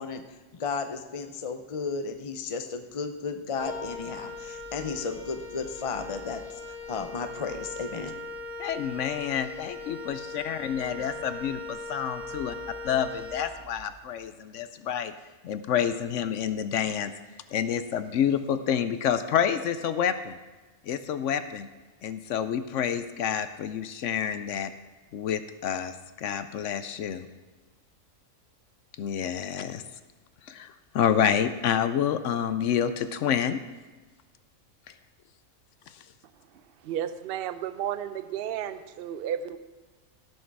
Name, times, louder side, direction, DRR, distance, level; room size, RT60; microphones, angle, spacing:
voice 1, 0.0-8.1, left 4 dB, 45° left, 7 dB, 0.4 m, -34 dB
Wind instrument woodwind instrument, 3.6-14.0, left 2 dB, 85° right, 2.3 m, -40 dB
voice 2, 8.6-12.5 12.8-15.1 15.4-17.1 17.5-20.4 20.9-21.7 22.0-24.7 25.1-27.2 29.0-29.8 30.5-33.6, left 8 dB, 70° left, 12 dB, 0.9 m, -28 dB
voice 3, 36.8-39.6, right 10 dB, 60° right, 12 dB, 0.6 m, -32 dB
17.0 x 6.3 x 4.6 m, 1.2 s
omnidirectional pair, 1.4 m